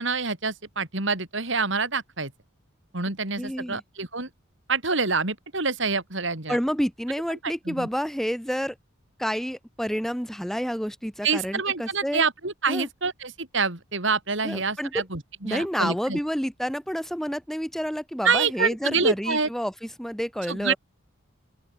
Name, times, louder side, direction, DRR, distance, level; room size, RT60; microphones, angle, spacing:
voice 1, 0.0-2.3 2.9-4.3 4.7-6.6 7.7-7.9 11.2-16.2 18.2-19.5 20.5-20.7, right 4 dB, 60° right, 3.6 m, -26 dB
voice 2, 3.4-3.8 6.5-8.7 9.2-12.2 12.7-12.9 14.4-15.0 15.4-20.8, equal, ahead, 7.6 m, -29 dB
open air
head